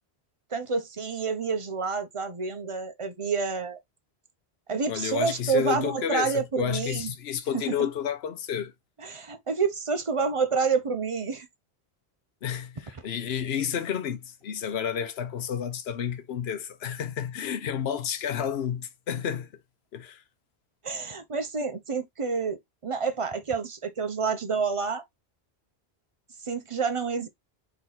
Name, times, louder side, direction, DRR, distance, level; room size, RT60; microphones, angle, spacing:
voice 1, 0.5-3.8 4.7-7.1 7.5-7.7 9.0-11.5 20.8-25.0 26.4-27.3, right 5 dB, 35° right, 0.7 m, -28 dB
voice 2, 4.9-8.7 12.4-19.5 19.9-20.2, left 8 dB, 75° left, 1.0 m, -31 dB
4.5 x 3.0 x 3.9 m
omnidirectional pair, 1.1 m